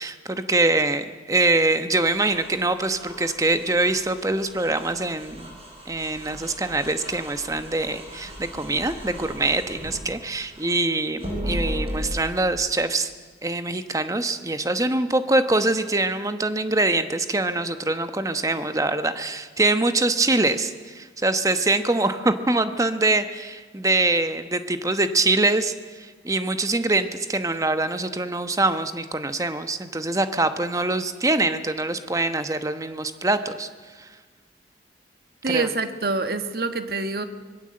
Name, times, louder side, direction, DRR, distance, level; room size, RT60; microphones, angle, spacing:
voice 1, 0.0-5.5 5.9-13.1 13.4-33.7 34.0-34.1 35.5-35.7, right 2 dB, 20° right, 9 dB, 1.1 m, -24 dB
sound 1, 2.0-10.8 11.2-12.2, equal, 35° right, 5.7 m, -36 dB
voice 2, 35.4-37.3, right 3 dB, 60° right, 9 dB, 1.4 m, -26 dB
25.0 x 20.5 x 7.7 m, 1.4 s
head